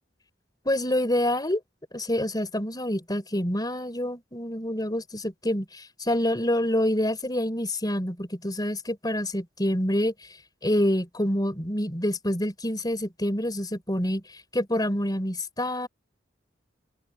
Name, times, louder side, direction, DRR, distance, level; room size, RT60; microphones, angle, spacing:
voice 1, 0.6-1.6 1.9-10.1 10.6-14.2 14.5-15.9, left 1 dB, 20° left, 4.6 m, -27 dB
open air
head